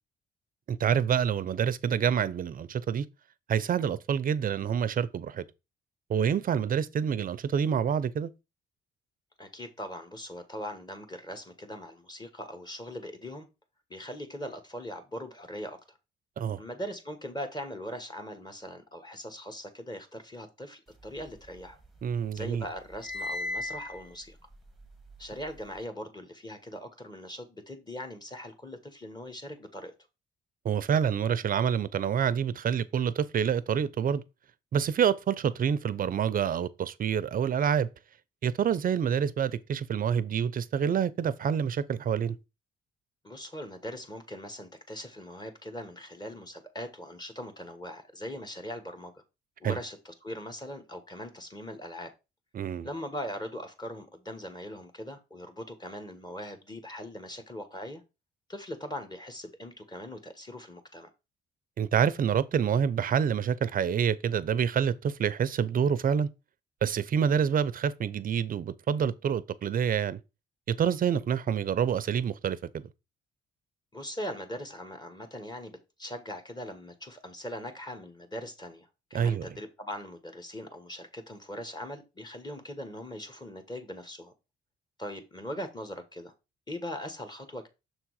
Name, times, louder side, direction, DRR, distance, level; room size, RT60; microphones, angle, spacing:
voice 1, 0.7-3.1 3.5-5.4 6.1-8.3 16.4-16.6 22.0-22.7 30.6-34.2 34.7-37.9 38.4-42.4 49.6-49.8 52.5-52.9 61.8-66.3 66.8-70.2 70.7-72.8 79.1-79.5, right 8 dB, 45° right, 0.5 m, -27 dB
voice 2, 9.4-13.5 13.9-16.0 16.6-21.8 22.3-24.4 25.2-29.9 43.2-49.2 49.6-52.1 52.8-58.0 58.5-61.1 73.9-84.3 85.0-86.3 86.7-87.7, equal, 20° left, 1.4 m, -40 dB
sound 1, 21.0-22.1 22.4-25.8, left 2 dB, ahead, 1.1 m, -39 dB
6.5 x 3.6 x 4.7 m
cardioid pair, 90°, 20 cm